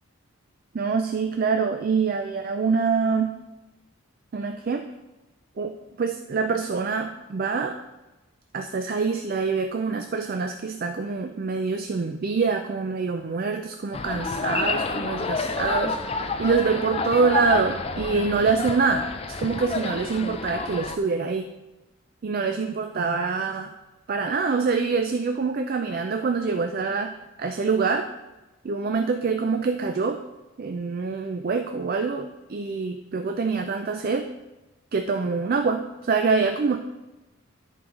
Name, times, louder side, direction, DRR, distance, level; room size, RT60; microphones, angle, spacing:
voice 1, 0.7-3.4 4.3-4.9 5.6-7.8 8.5-21.5 22.2-23.7 24.1-28.1 28.6-30.2 30.6-34.3 34.9-36.8, right 4 dB, 45° right, 6 dB, 0.4 m, -25 dB
sound 1, 13.9-21.0, left 3 dB, 25° left, 0.4 m, -29 dB
13.5 x 4.6 x 3.7 m, 1.1 s
head